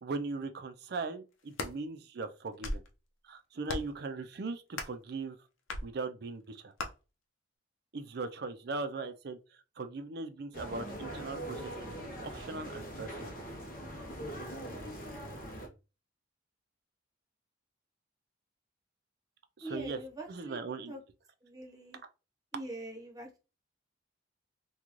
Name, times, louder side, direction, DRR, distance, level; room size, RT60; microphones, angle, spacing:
voice 1, 0.0-2.8 3.2-5.4 5.8-6.7 7.9-9.4 9.8-12.0 12.2-13.3 19.7-20.0 20.3-20.9, right 3 dB, 55° right, 0.4 m, -39 dB
sound 1, 1.3-1.8 2.4-2.9 3.6-4.0 4.7-5.0 5.7-5.9 6.8-6.9, left 2 dB, 85° left, 0.7 m, -37 dB
sound 2, 10.5-15.7, right 1 dB, 45° left, 0.8 m, -42 dB
voice 2, 19.6-21.0 21.4-22.0 22.5-23.4, right 1 dB, 20° right, 0.9 m, -44 dB
3.7 x 2.3 x 3.0 m
head